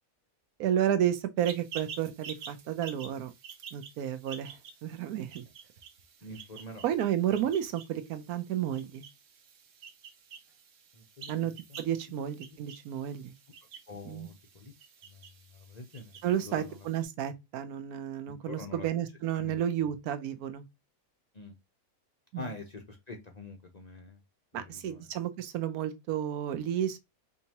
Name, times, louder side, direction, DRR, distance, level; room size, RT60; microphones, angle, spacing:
voice 1, 0.6-3.3 3.7-5.4 6.8-9.0 11.3-11.5 11.8-13.3 14.0-14.3 16.2-20.6 22.3-22.5 24.5-27.0, right 10 dB, 85° right, 1.1 m, -31 dB
sound 1, 1.4-17.0, right 6 dB, 60° right, 1.0 m, -49 dB
voice 2, 6.2-6.8 10.9-12.2 13.0-13.1 13.9-14.7 15.0-15.2 15.5-16.1 16.4-16.9 18.4-18.9 19.3-19.9 21.3-21.5 22.4-24.2 24.5-25.1, left 3 dB, 55° left, 0.4 m, -46 dB
4.5 x 2.9 x 2.8 m
omnidirectional pair, 1.6 m